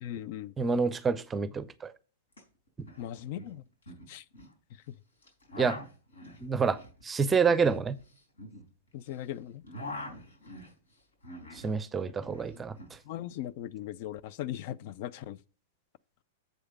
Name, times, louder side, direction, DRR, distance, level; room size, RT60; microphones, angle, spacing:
voice 1, 0.0-0.5 3.0-3.6 4.1-4.2 8.9-9.6 13.1-15.4, left 12 dB, 50° left, 0.4 m, -38 dB
voice 2, 0.6-1.9 5.6-5.8 6.4-6.8 7.0-8.0 11.6-12.8, right 5 dB, 15° right, 0.6 m, -27 dB
sound 1, 2.3-2.4 2.7-3.0 3.3-4.5 5.2-9.2 9.5-11.7 12.0-13.0, left 1 dB, 85° left, 4.1 m, -44 dB
7.8 x 4.9 x 6.4 m
hypercardioid pair, 110°, 0 cm